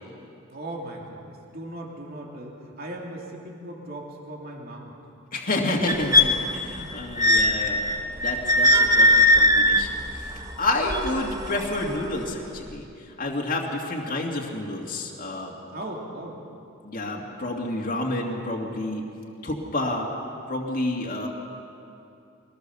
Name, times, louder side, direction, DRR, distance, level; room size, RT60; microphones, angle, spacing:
voice 1, 0.5-4.9 15.7-16.4, right 1 dB, 45° right, -1 dB, 2.9 m, -38 dB
voice 2, 5.3-7.9 8.2-12.8 13.2-15.5 16.8-19.0 19.4-20.1 20.5-21.3, left 2 dB, 40° left, -1 dB, 2.2 m, -29 dB
sound 1, 5.9-11.9 12.7-12.8, left 1 dB, 15° right, 1.1 m, -21 dB
23.5 x 19.0 x 6.9 m, 2.6 s
head